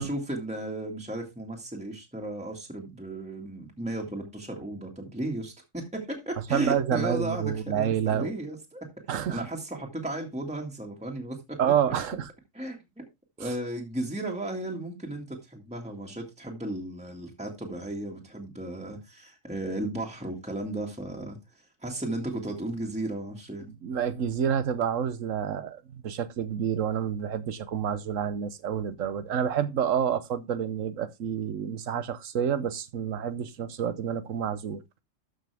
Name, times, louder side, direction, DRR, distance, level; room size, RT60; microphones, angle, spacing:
voice 1, 0.0-8.9 9.3-11.6 12.5-13.1 13.4-23.7, right 1 dB, 5° right, 2.0 m, -35 dB
voice 2, 6.5-8.3 9.1-9.4 11.6-12.3 23.8-34.8, right 8 dB, 90° right, 1.3 m, -28 dB
13.0 x 5.9 x 3.5 m
omnidirectional pair, 1.3 m